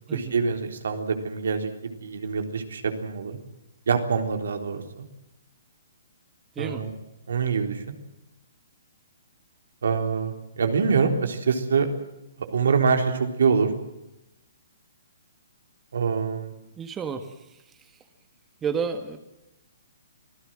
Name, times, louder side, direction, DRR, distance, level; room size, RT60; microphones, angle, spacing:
voice 1, 0.1-1.7 2.0-3.4 3.9-5.1 6.6-6.9 7.3-7.8 9.8-11.9 12.4-13.7 15.9-16.5, right 5 dB, 75° right, 5 dB, 3.8 m, -25 dB
voice 2, 6.5-6.8 16.8-17.9 18.6-19.2, right 6 dB, 15° right, 7 dB, 1.7 m, -31 dB
26.0 x 16.5 x 7.7 m, 0.91 s
hypercardioid pair, 145°, 0 cm